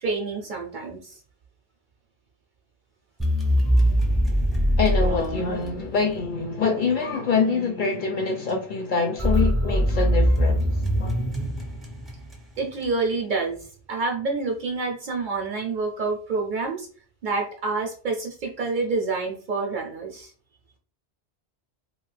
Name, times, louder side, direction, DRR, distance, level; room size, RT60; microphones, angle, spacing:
voice 1, 0.0-1.2 12.6-16.9 17.2-20.3, right 3 dB, 55° right, 0.7 m, -28 dB
sound 1, 3.2-6.2 9.2-12.6, equal, ahead, 0.5 m, -22 dB
voice 2, 4.8-10.7 11.0-11.2, left 4 dB, 60° left, 0.6 m, -25 dB
2.6 x 2.4 x 3.2 m
omnidirectional pair, 1.1 m